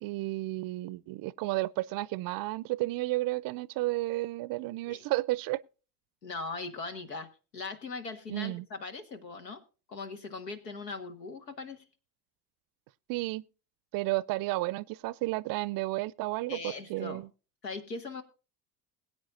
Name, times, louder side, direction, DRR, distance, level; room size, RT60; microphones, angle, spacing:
voice 1, 0.0-5.6 8.3-8.7 13.1-13.4 13.9-17.3, right 19 dB, 45° right, 0.5 m, -32 dB
voice 2, 6.2-9.6 9.9-11.8 16.5-17.2 17.6-18.2, left 4 dB, 85° left, 1.4 m, -40 dB
21.0 x 8.8 x 2.5 m
figure-of-eight pair, 65°, 48 cm